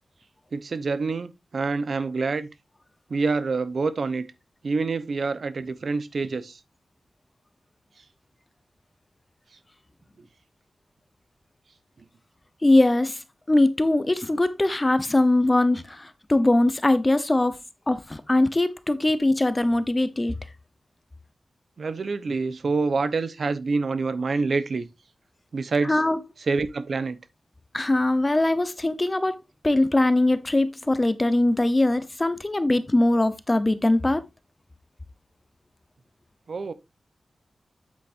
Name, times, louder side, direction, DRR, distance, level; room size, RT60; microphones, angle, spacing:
voice 1, 0.5-2.5 3.1-4.3 4.6-6.6 21.8-24.9 25.5-26.0 26.4-27.2 36.5-36.7, right 4 dB, 65° right, 0.9 m, -26 dB
voice 2, 12.6-17.6 17.9-20.4 25.9-26.2 27.7-29.4 29.6-34.2, left 2 dB, 20° left, 0.8 m, -21 dB
8.5 x 8.3 x 2.6 m
wide cardioid pair, 125°, 0 cm